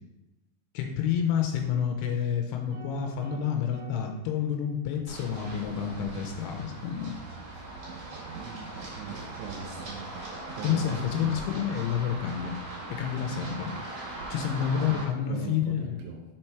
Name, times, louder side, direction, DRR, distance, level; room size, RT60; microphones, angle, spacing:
voice 1, 0.7-7.1 10.6-12.6 13.0-13.7 14.3-16.0, left 8 dB, 85° left, 3 dB, 2.6 m, -29 dB
sound 1, 2.7-5.2, right 2 dB, 65° right, 3.1 m, -51 dB
Run, 5.1-15.0, right 2 dB, 45° right, 2.6 m, -40 dB
voice 2, 8.4-10.1 10.6-11.5 14.6-16.2, right 7 dB, 90° right, 1 dB, 2.9 m, -41 dB
6.0 x 4.4 x 4.5 m, 1.0 s
omnidirectional pair, 4.6 m